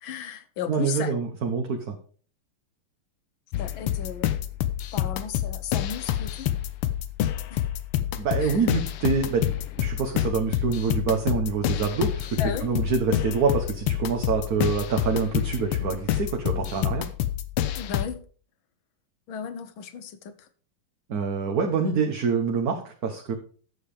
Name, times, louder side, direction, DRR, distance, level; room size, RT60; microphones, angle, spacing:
voice 1, 0.0-1.1 3.6-4.3 4.9-6.5 7.5-7.6 8.4-8.7 12.4-12.8 17.7-18.2 19.3-20.5, left 8 dB, 70° left, 1.7 m, -35 dB
voice 2, 0.7-1.8 8.2-9.5 9.8-12.3 12.6-17.1 21.1-23.3, right 5 dB, 50° right, 1.4 m, -26 dB
sound 1, 3.5-18.1, left 12 dB, 90° left, 1.7 m, -28 dB
10.5 x 7.4 x 5.0 m
omnidirectional pair, 2.4 m